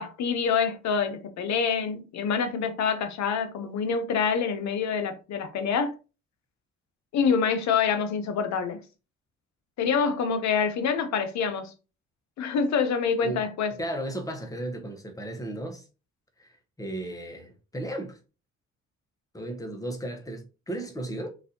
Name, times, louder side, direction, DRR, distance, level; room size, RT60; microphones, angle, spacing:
voice 1, 0.0-5.9 7.1-8.8 9.8-11.7 12.4-13.7, left 6 dB, 65° left, 0.7 m, -26 dB
voice 2, 13.7-15.8 16.4-16.5 16.8-18.2 19.3-21.3, right 1 dB, 10° left, 0.9 m, -35 dB
4.0 x 2.5 x 2.7 m
cardioid pair, 90°, 30 cm